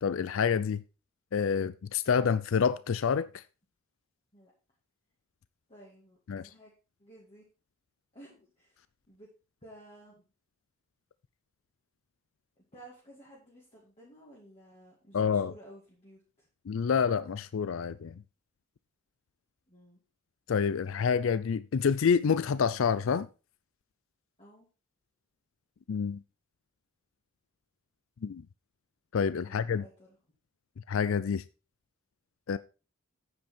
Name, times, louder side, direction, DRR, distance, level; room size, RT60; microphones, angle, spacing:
voice 1, 0.0-0.8 1.3-3.4 6.3-6.4 15.1-15.5 16.7-18.2 20.5-23.3 25.9-26.2 28.2-28.4 29.1-29.8 30.9-31.4 32.5-32.6, left 6 dB, 65° left, 0.4 m, -28 dB
voice 2, 5.7-6.7 7.0-7.4 8.1-9.3 9.6-10.2 12.7-16.5 19.7-20.0 24.4-24.7 29.4-30.2, right 1 dB, 30° left, 2.5 m, -54 dB
9.0 x 7.9 x 4.4 m
head